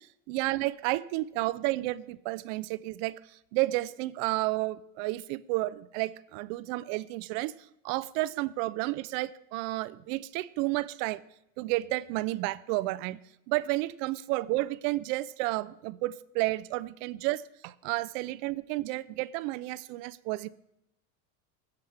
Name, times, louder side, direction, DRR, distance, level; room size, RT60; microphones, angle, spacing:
voice 1, 0.0-7.5 7.8-11.2 11.6-13.2 13.5-20.5, right 19 dB, 75° right, 18 dB, 0.6 m, -31 dB
16.5 x 7.0 x 3.3 m, 0.82 s
cardioid pair, 155°, 39 cm